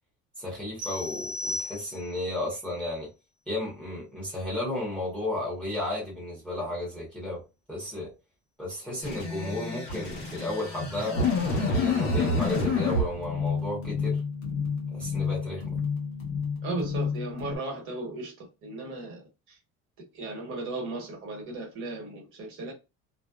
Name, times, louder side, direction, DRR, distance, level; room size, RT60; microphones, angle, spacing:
voice 1, 0.4-3.1 3.5-7.4 7.7-8.1 8.6-11.2 11.6-14.2 14.9-15.8, left 1 dB, 5° left, 0.8 m, -33 dB
sound 1, 0.8-2.3, left 2 dB, 30° right, 0.7 m, -35 dB
sound 2, 9.0-12.7, left 2 dB, 35° left, 1.1 m, -38 dB
sound 3, 11.1-17.6, left 4 dB, 60° left, 0.9 m, -28 dB
voice 2, 16.6-19.5 20.1-22.7, right 2 dB, 45° right, 1.1 m, -36 dB
2.6 x 2.0 x 2.3 m
cardioid pair, 170°, 30 cm